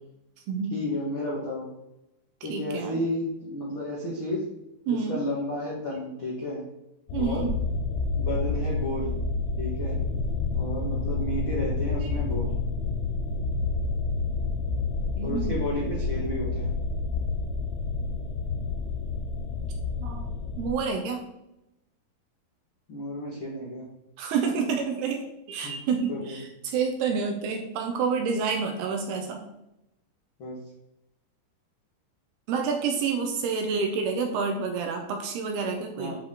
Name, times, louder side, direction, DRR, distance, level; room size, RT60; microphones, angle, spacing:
voice 1, 0.7-1.7 2.4-4.4 4.9-6.6 7.1-7.5 8.2-9.2 9.6-10.0 10.5-12.5 15.2-16.7 22.9-23.9 25.6-25.7 26.1-26.4 30.4-30.6 36.0-36.2, left 1 dB, 60° left, -6 dB, 1.3 m, -32 dB
voice 2, 2.5-3.0 4.9-5.2 7.1-7.5 12.0-12.1 15.2-15.6 20.0-20.3 20.6-21.2 24.2-25.2 25.5-29.4 32.5-36.1, right 5 dB, 75° right, 3 dB, 2.6 m, -28 dB
sound 1, 7.1-20.7, left 3 dB, 80° left, 2.6 m, -29 dB
10.5 x 4.4 x 3.9 m, 0.87 s
omnidirectional pair, 5.0 m